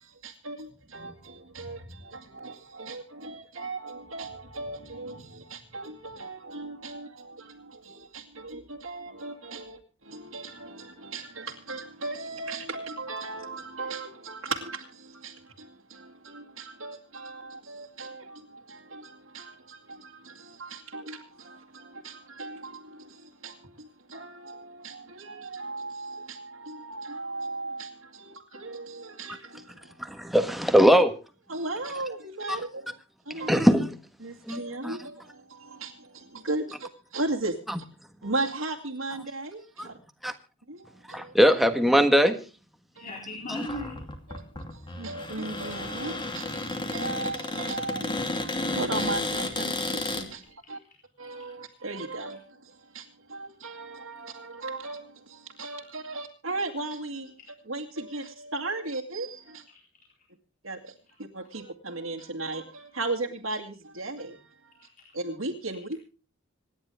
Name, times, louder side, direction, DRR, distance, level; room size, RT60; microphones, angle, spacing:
voice 1, 0.0-30.1 31.5-33.7 34.2-37.9 38.2-39.9 40.7-41.3 43.0-43.1 44.3-50.8 51.2-57.3 57.7-59.6 60.6-60.9 61.2-64.9 65.1-66.0, right 2 dB, 75° right, 2.2 m, -37 dB
voice 2, 30.0-31.1 32.5-32.6 33.5-33.9 34.5-35.0 39.8-39.9 40.2-40.3 41.1-42.4, equal, ahead, 1.5 m, -21 dB
voice 3, 42.9-44.0 50.6-51.3 64.8-65.1, left 1 dB, 40° left, 4.1 m, -39 dB
Cupboard open or close, 43.6-50.3, left 2 dB, 25° left, 2.6 m, -32 dB
26.5 x 10.5 x 3.5 m
head